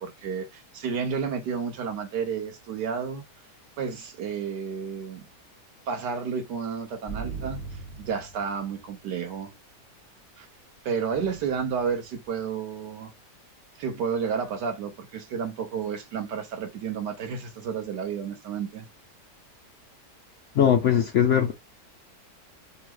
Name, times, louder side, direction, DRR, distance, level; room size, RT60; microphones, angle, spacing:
voice 1, 0.0-3.2 3.8-5.2 5.9-9.5 10.4-10.5 10.8-13.1 13.8-18.9, right 6 dB, 80° right, 1.4 m, -31 dB
sound 1, 7.1-8.9 11.1-12.1, right 5 dB, 15° right, 0.4 m, -39 dB
voice 2, 20.5-21.5, left 9 dB, 65° left, 0.7 m, -20 dB
3.5 x 2.3 x 3.0 m
omnidirectional pair, 1.8 m